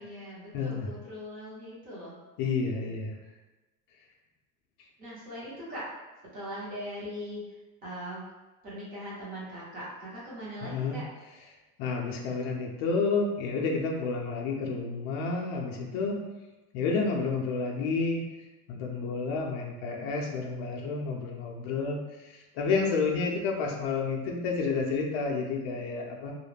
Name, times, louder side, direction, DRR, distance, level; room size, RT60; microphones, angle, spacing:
voice 1, 0.0-2.1 5.0-5.8 6.3-7.4 7.8-8.2 8.6-11.0, equal, 20° right, -7 dB, 0.7 m, -40 dB
voice 2, 0.5-0.9 2.4-3.1 10.6-11.0 11.8-16.2 16.7-18.3 18.7-26.3, left 4 dB, 50° left, 0 dB, 0.5 m, -30 dB
2.3 x 2.1 x 3.2 m, 1.1 s
cardioid pair, 170°, 40 cm